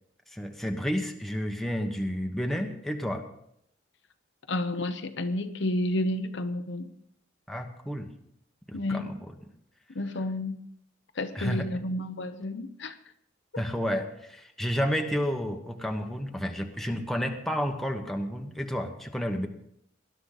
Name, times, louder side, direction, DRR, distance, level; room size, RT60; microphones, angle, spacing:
voice 1, 0.3-3.3 7.5-8.1 8.7-9.3 11.3-11.7 13.6-19.5, equal, ahead, 3 dB, 1.2 m, -31 dB
voice 2, 4.5-6.9 8.7-9.1 9.9-10.6 11.2-13.0 13.5-13.6, left 1 dB, 65° left, 8 dB, 0.9 m, -31 dB
19.5 x 11.5 x 4.0 m, 0.73 s
head